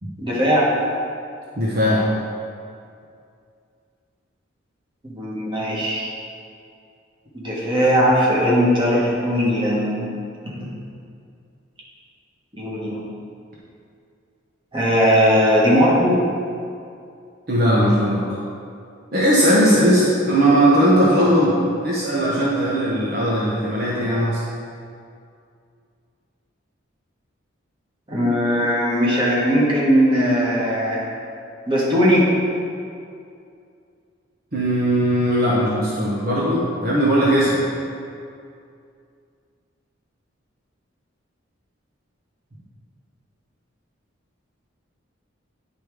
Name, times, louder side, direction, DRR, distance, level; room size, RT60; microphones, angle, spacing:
voice 1, 0.2-0.7 5.0-6.1 7.3-10.1 12.6-13.0 14.7-16.2 28.1-31.0 31.7-32.2, equal, 25° right, -6 dB, 1.5 m, -19 dB
voice 2, 1.6-2.0 17.5-18.2 19.1-24.4 34.5-37.6, equal, 50° right, -6 dB, 1.0 m, -18 dB
9.8 x 3.5 x 4.8 m, 2.4 s
head